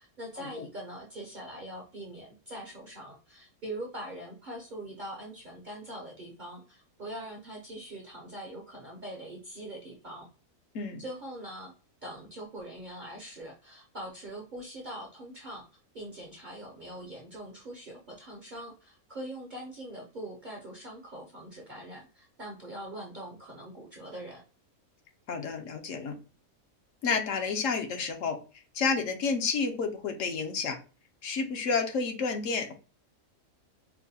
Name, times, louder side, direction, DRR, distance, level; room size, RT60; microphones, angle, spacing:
voice 1, 0.0-10.3 11.0-11.7 12.0-15.6 15.9-24.4, right 1 dB, 50° right, -1 dB, 0.6 m, -42 dB
voice 2, 25.3-26.1 27.0-28.4 28.7-30.8 31.2-32.7, left 5 dB, 65° left, 5 dB, 1.0 m, -30 dB
4.6 x 2.2 x 2.7 m, 0.35 s
omnidirectional pair, 1.5 m